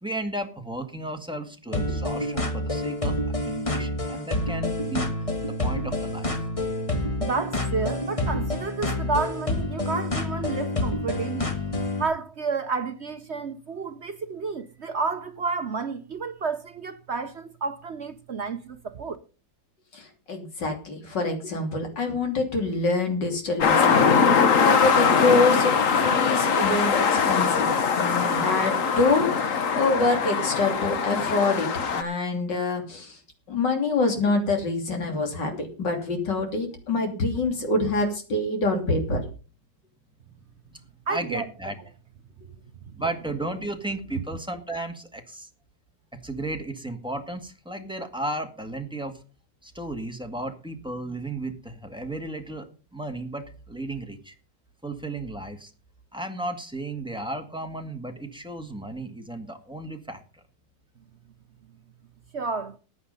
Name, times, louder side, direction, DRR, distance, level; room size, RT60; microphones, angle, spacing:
voice 1, 0.0-3.2 3.4-5.1 5.6-6.3 40.7-40.8 41.1-41.7 43.0-45.5 46.2-49.1 49.6-52.7 52.9-54.3 54.8-55.7 56.1-60.2, right 2 dB, 5° right, 1.8 m, -34 dB
sound 1, 1.7-12.0, left 1 dB, 20° left, 1.6 m, -28 dB
voice 2, 7.2-11.5 12.0-19.2 41.1-41.4 62.3-62.8, right 4 dB, 50° right, 0.8 m, -30 dB
voice 3, 20.3-33.1 33.5-39.2, left 3 dB, 70° left, 3.6 m, -26 dB
sound 2, 23.6-32.0, left 6 dB, 50° left, 1.4 m, -22 dB
14.5 x 9.3 x 5.4 m
omnidirectional pair, 2.0 m